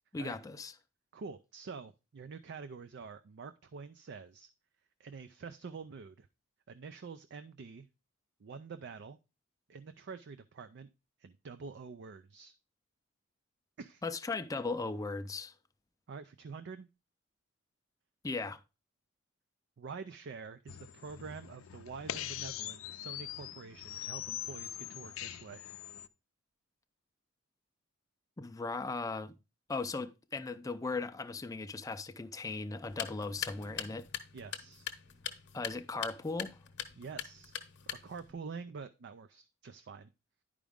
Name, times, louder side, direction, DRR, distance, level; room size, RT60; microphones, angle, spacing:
voice 1, 0.1-0.7 14.0-15.5 18.2-18.6 28.4-29.3 29.7-34.0 35.5-36.6, left 3 dB, 15° left, 0.4 m, -37 dB
voice 2, 1.1-4.5 5.0-6.3 6.7-7.9 8.4-9.2 9.7-10.9 11.2-12.5 13.8-14.0 16.1-16.9 19.8-25.6 34.3-34.9 37.0-37.6 37.9-40.1, right 5 dB, 55° right, 0.4 m, -47 dB
sound 1, 20.7-26.1, left 11 dB, 75° left, 0.5 m, -43 dB
sound 2, 32.8-38.3, left 9 dB, 55° left, 0.9 m, -43 dB
10.0 x 5.0 x 3.5 m
head